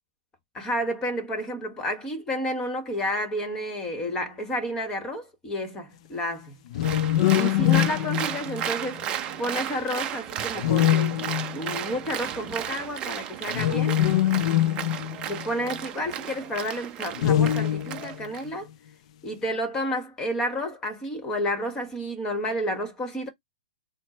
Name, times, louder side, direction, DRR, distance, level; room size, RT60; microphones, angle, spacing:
voice 1, 0.5-6.6 7.3-11.2 11.5-14.0 15.3-18.7 19.2-23.3, equal, 15° left, 1.2 m, -30 dB
sound 1, 6.7-9.0 10.6-11.8 13.5-15.8 17.2-18.2, left 12 dB, 50° left, 0.3 m, -23 dB
Applause, 6.8-18.4, right 10 dB, 25° right, 0.5 m, -34 dB
4.3 x 2.0 x 4.2 m
hypercardioid pair, 150°, 4 cm